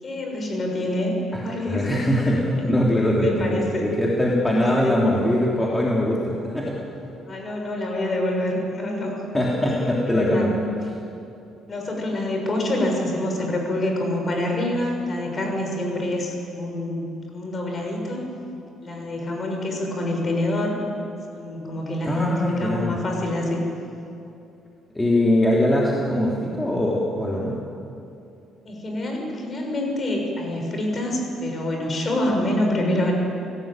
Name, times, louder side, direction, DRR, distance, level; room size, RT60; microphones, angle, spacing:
voice 1, 0.0-1.8 2.6-2.8 3.2-3.9 4.8-5.0 7.3-9.2 10.1-10.5 11.7-18.2 18.8-20.8 21.3-23.6 28.6-33.1, left 1 dB, 30° left, 1 dB, 6.8 m, -26 dB
voice 2, 1.7-6.7 9.3-10.6 22.1-23.0 25.0-27.5, left 1 dB, 10° left, -4 dB, 3.5 m, -22 dB
29.5 x 17.5 x 9.1 m, 2.7 s
cardioid pair, 120°, 0 cm